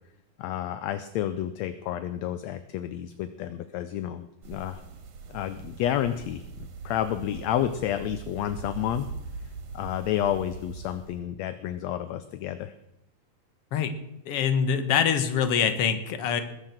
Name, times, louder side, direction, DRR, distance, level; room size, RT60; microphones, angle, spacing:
voice 1, 0.4-4.8 5.3-9.1 9.7-12.7, left 11 dB, 75° left, 11 dB, 1.8 m, -30 dB
sound 1, 4.4-11.3, right 5 dB, 80° right, 3.1 m, -41 dB
voice 2, 14.3-16.4, left 7 dB, 60° left, 10 dB, 2.0 m, -24 dB
20.5 x 7.5 x 7.4 m, 0.85 s
omnidirectional pair, 3.4 m